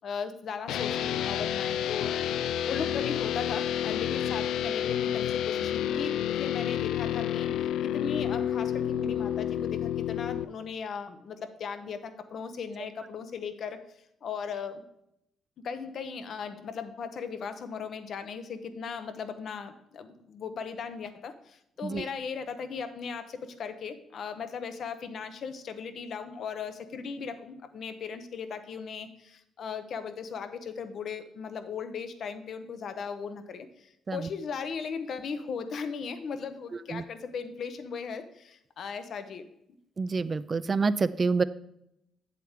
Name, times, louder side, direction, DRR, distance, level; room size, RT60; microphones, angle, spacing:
voice 1, 0.0-13.8 14.2-14.8 15.6-39.5, left 6 dB, 60° left, 9 dB, 0.8 m, -37 dB
sound 1, 0.7-10.4, left 10 dB, 80° left, 0.3 m, -29 dB
voice 2, 40.0-41.4, right 4 dB, 35° right, 15 dB, 0.4 m, -27 dB
8.1 x 7.6 x 3.6 m, 0.79 s
cardioid pair, 90°, 0 cm